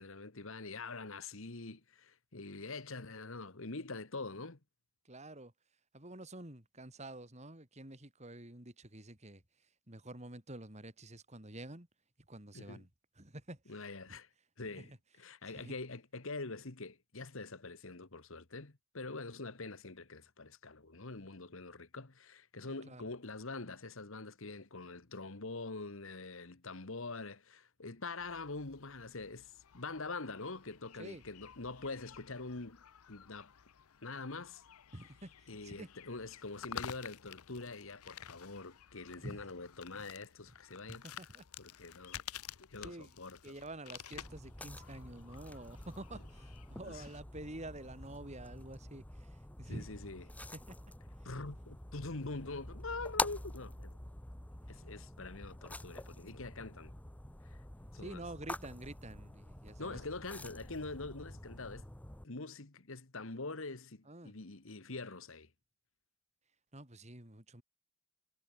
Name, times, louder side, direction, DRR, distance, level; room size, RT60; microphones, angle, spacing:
voice 1, 0.0-4.6 12.5-12.8 13.7-14.3 14.6-33.5 34.0-34.6 35.5-41.0 41.6-42.2 42.6-43.5 46.8-47.0 49.7-50.2 51.2-54.0 54.7-56.9 57.4-57.6 57.9-58.2 59.8-61.9 62.2-65.5, left 3 dB, 60° left, 1.5 m, -44 dB
voice 2, 5.0-5.5 5.9-11.9 12.3-12.9 13.2-13.7 14.1-14.2 14.7-15.0 15.4-15.7 22.9-23.0 31.0-31.2 34.9-35.9 39.2-39.5 40.9-41.4 42.8-43.1 43.4-49.9 50.5-50.8 51.2-51.3 58.0-60.0 64.1-64.3 66.7-67.6, right 1 dB, 30° right, 2.9 m, -48 dB
sound 1, 28.2-47.2, left 9 dB, 80° left, 0.7 m, -52 dB
sound 2, 44.1-62.2, left 2 dB, 5° left, 0.7 m, -46 dB
head